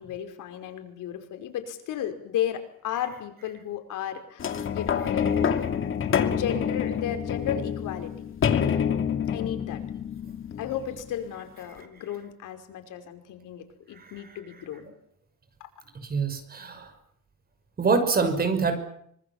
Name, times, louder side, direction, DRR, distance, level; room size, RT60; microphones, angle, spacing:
voice 1, 0.0-5.6 6.3-8.1 9.3-9.8 10.6-14.9, left 10 dB, 90° left, 7 dB, 5.3 m, -34 dB
sound 1, 4.4-11.2 11.8-11.9, left 7 dB, 40° left, 2.6 m, -27 dB
voice 2, 16.1-16.9 17.8-18.8, right 4 dB, 30° right, 9 dB, 6.0 m, -25 dB
25.5 x 25.0 x 7.4 m, 0.68 s
cardioid pair, 160°, 30 cm